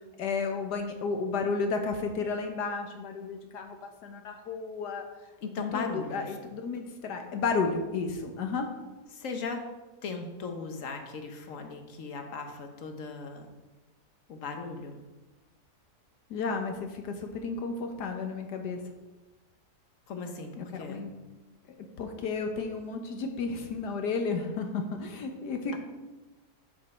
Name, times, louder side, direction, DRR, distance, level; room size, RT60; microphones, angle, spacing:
voice 1, 0.2-5.1 5.7-8.7 16.3-18.8 20.6-21.1 22.0-25.8, left 4 dB, 90° left, 4 dB, 1.6 m, -32 dB
voice 2, 5.4-6.4 9.1-9.7 10.0-13.5 14.3-15.0 20.1-21.0, left 4 dB, 55° left, 5 dB, 1.3 m, -37 dB
7.9 x 7.5 x 4.3 m, 1.2 s
omnidirectional pair, 1.7 m